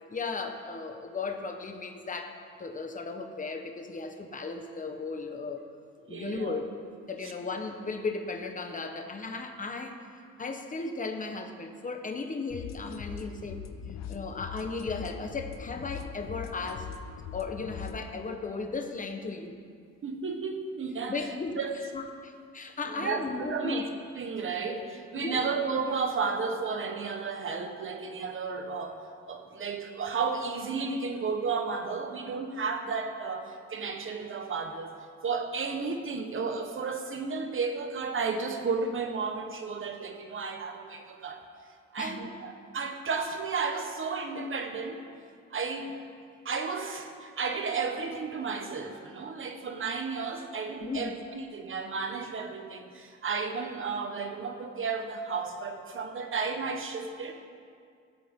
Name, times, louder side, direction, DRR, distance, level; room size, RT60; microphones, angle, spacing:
voice 1, 0.0-5.6 6.1-6.7 7.1-10.1 10.4-13.6 14.1-16.9 17.3-19.6 21.1-21.6 21.9-23.8 25.2-25.5 42.0-42.3 50.8-51.1, left 4 dB, 25° left, 5 dB, 1.1 m, -36 dB
voice 2, 6.1-6.6 20.0-21.2 21.6-21.8 22.9-23.9 24.1-34.9 35.2-41.4 41.9-45.0 45.5-46.0 46.4-57.3, right 4 dB, 45° right, 5 dB, 1.2 m, -33 dB
sound 1, 12.5-18.0, left 7 dB, 65° left, 0.7 m, -41 dB
17.0 x 7.6 x 3.8 m, 2.3 s
cardioid pair, 90°, 30 cm